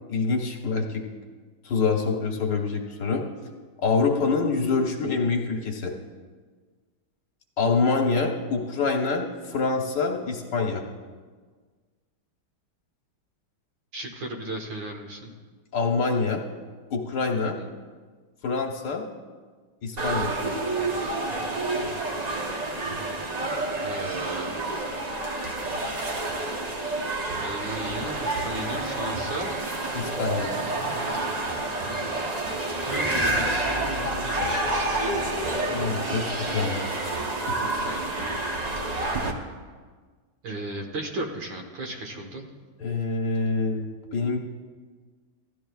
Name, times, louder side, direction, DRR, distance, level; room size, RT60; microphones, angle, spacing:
voice 1, 0.1-1.0 1.6-3.2 3.8-5.9 7.6-10.8 15.7-16.4 16.9-17.6 18.4-19.0 19.8-20.3 29.9-30.5 35.7-36.9 37.5-37.6 42.8-44.4, left 4 dB, 65° left, 0 dB, 1.7 m, -26 dB
voice 2, 13.9-15.3 17.6-17.7 23.7-24.5 27.3-29.5 32.8-35.1 37.8-38.4 40.4-42.4, right 1 dB, 75° right, 1 dB, 2.1 m, -36 dB
sound 1, 20.0-39.3, right 2 dB, 50° right, 0.4 m, -29 dB
sound 2, 32.5-35.8, left 5 dB, 25° left, 1.1 m, -40 dB
16.0 x 12.5 x 2.3 m, 1.5 s
omnidirectional pair, 2.1 m